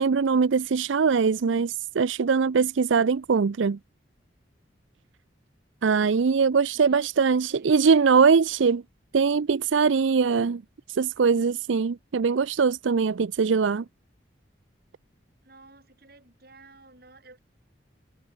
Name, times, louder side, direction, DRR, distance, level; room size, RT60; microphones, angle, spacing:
voice 1, 0.0-3.8 5.8-8.8 9.1-10.6 10.9-13.8, right 5 dB, 85° right, 0.5 m, -22 dB
voice 2, 6.7-8.0 15.4-17.4, right 2 dB, 55° right, 6.5 m, -53 dB
head